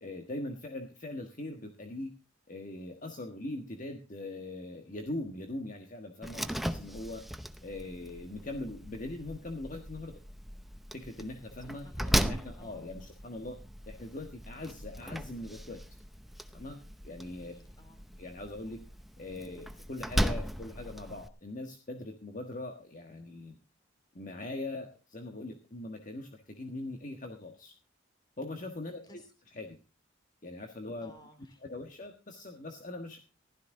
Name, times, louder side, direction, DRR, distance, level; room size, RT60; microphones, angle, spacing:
voice 1, 0.0-2.1 2.5-7.2 7.6-10.1 10.9-13.6 13.9-15.8 16.5-17.5 18.2-18.8 19.2-23.6 24.1-27.7 28.4-29.2 29.5-29.8 30.4-31.1 31.6-33.2, left 2 dB, 40° left, 5 dB, 1.4 m, -41 dB
Slam, 6.2-21.3, equal, ahead, 0.7 m, -37 dB
voice 2, 11.7-12.3 12.6-12.9 17.2-18.0 28.8-29.3 31.0-31.6, equal, 20° left, 8 dB, 2.9 m, -58 dB
15.5 x 13.0 x 3.8 m, 0.31 s
head